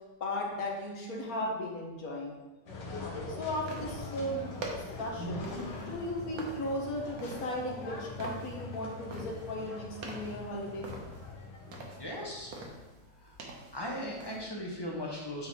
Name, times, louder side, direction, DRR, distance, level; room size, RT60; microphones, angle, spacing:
voice 1, 0.2-2.3 3.0-4.4 4.7-5.4 5.9-10.9, left 1 dB, 55° left, -1 dB, 1.6 m, -36 dB
sound 1, 2.7-12.7, left 2 dB, 80° left, 1.8 m, -42 dB
sound 2, 3.6-14.4, right 2 dB, 60° right, 1.4 m, -47 dB
voice 2, 12.0-12.5 13.2-13.4 13.7-15.5, left 1 dB, 15° left, -3 dB, 1.0 m, -38 dB
8.5 x 4.2 x 3.7 m, 1.2 s
omnidirectional pair, 1.9 m